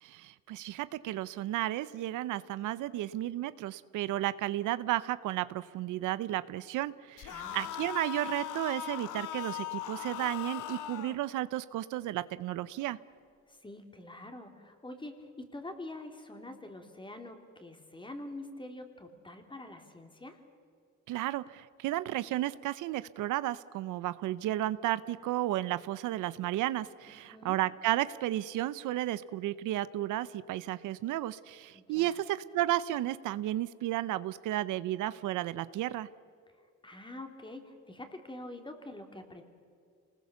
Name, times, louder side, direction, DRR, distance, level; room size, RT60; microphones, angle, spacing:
voice 1, 0.0-13.0 21.1-36.1, right 14 dB, 85° right, 16 dB, 0.7 m, -33 dB
sound 1, 7.2-11.2, left 11 dB, 85° left, 1.2 m, -39 dB
voice 2, 7.3-7.9 13.5-20.4 27.1-27.6 31.7-32.2 36.8-39.4, left 2 dB, 15° left, 5 dB, 3.1 m, -46 dB
26.5 x 20.0 x 7.0 m, 2.3 s
cardioid pair, 90°, 30 cm